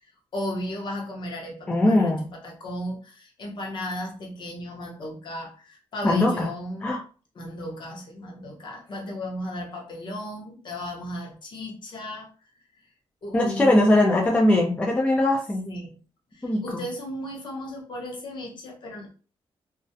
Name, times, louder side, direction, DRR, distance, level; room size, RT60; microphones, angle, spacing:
voice 1, 0.0-6.9 7.3-12.3 13.2-14.0 15.6-16.0 16.3-19.1, left 1 dB, 45° left, 0 dB, 0.7 m, -35 dB
voice 2, 1.7-2.2 6.0-6.5 6.8-7.0 13.3-15.7 16.4-16.8, left 1 dB, 10° left, -1 dB, 0.3 m, -21 dB
2.3 x 2.0 x 2.6 m, 0.38 s
wide cardioid pair, 165°, 11 cm